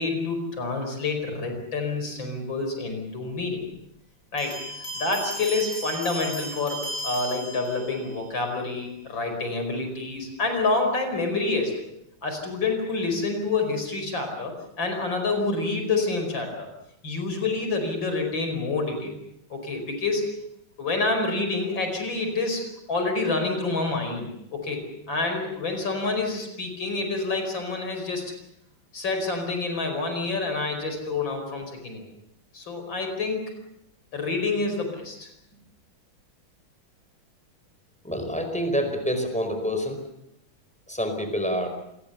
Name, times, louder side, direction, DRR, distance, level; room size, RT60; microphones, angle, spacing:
voice 1, 0.0-3.6 4.3-4.6 4.9-11.7 12.2-16.7 17.0-19.1 19.5-20.3 20.8-28.3 28.9-32.0 32.5-33.5 34.1-35.3, left 3 dB, 65° left, 5 dB, 5.7 m, -28 dB
sound 1, 4.4-8.2, equal, 40° left, 8.7 m, -35 dB
voice 2, 38.0-40.0 40.9-41.7, equal, 5° left, 5 dB, 4.7 m, -27 dB
27.5 x 21.0 x 6.9 m, 0.78 s
omnidirectional pair, 2.2 m